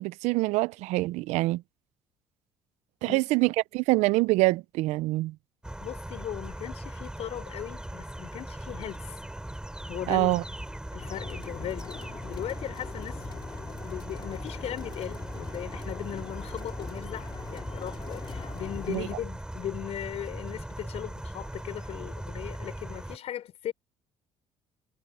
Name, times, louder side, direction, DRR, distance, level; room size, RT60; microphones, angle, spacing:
voice 1, 0.0-1.6 3.0-5.3 10.1-10.4 18.9-19.1, right 21 dB, 80° right, 0.6 m, -25 dB
sound 1, 5.6-23.2, right 1 dB, 5° right, 6.7 m, -39 dB
voice 2, 5.8-9.2 9.9-10.3 10.9-13.2 13.8-23.7, left 11 dB, 65° left, 5.1 m, -38 dB
sound 2, 11.0-19.2, left 6 dB, 40° left, 5.0 m, -43 dB
supercardioid pair, 80°, 11 cm